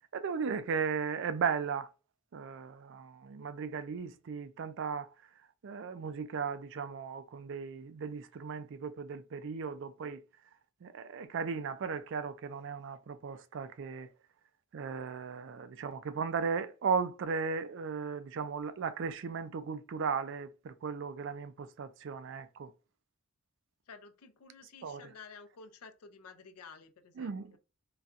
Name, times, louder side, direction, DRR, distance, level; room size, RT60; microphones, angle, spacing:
voice 1, 0.1-1.9 2.3-5.1 5.6-10.2 10.8-14.1 14.7-22.7 24.8-25.0 27.2-27.5, right 5 dB, 55° right, 0.3 m, -36 dB
voice 2, 23.9-27.6, left 5 dB, 90° left, 0.5 m, -52 dB
4.0 x 2.2 x 2.4 m
head